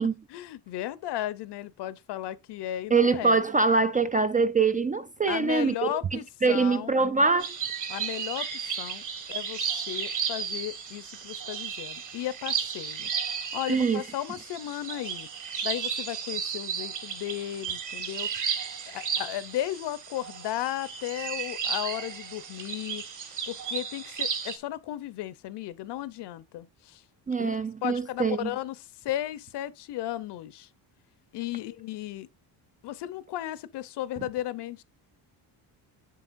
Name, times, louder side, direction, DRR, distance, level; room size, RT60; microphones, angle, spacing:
voice 1, 0.3-3.4 5.3-7.0 7.9-9.0 9.3-13.1 13.5-15.3 15.6-18.3 18.9-23.0 23.5-27.0 27.4-27.5 27.8-30.7 31.3-32.3 32.8-34.8, left 13 dB, 70° left, 0.8 m, -35 dB
voice 2, 2.9-7.5 13.7-14.0 27.3-28.5, right 4 dB, 20° right, 0.3 m, -24 dB
sound 1, 7.4-24.6, right 7 dB, 45° right, 1.7 m, -34 dB
7.7 x 7.2 x 2.5 m
cardioid pair, 130°, 42 cm